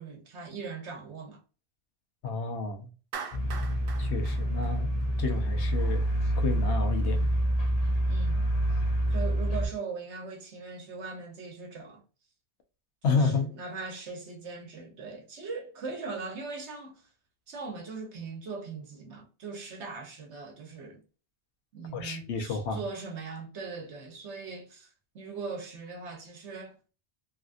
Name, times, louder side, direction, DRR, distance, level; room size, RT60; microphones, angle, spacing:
voice 1, 0.0-1.4 8.1-8.5 9.1-12.0 13.0-17.1 17.5-21.0 21.7-26.8, right 4 dB, 85° right, 1.2 m, -40 dB
voice 2, 2.2-2.9 4.0-4.9 5.2-6.0 6.4-7.3 13.0-13.5 21.9-22.8, left 4 dB, 80° left, 1.1 m, -30 dB
Clapping, 3.1-5.4, right 6 dB, 65° right, 0.7 m, -42 dB
sound 1, 3.3-9.7, right 1 dB, 45° left, 0.6 m, -27 dB
3.3 x 2.4 x 2.5 m
omnidirectional pair, 1.1 m